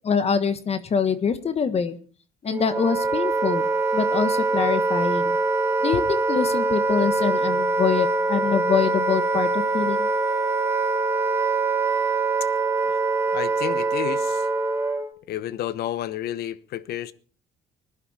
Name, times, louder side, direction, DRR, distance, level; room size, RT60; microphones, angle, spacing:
voice 1, 0.0-2.0 2.4-3.6 3.9-5.4 5.8-10.1, left 6 dB, 40° left, 1.4 m, -24 dB
Wind instrument woodwind instrument, 2.5-15.1, right 3 dB, 15° right, 4.2 m, -23 dB
voice 2, 13.3-14.5 15.3-17.1, left 12 dB, 70° left, 1.0 m, -31 dB
20.5 x 11.0 x 4.3 m
cardioid pair, 110°, 17 cm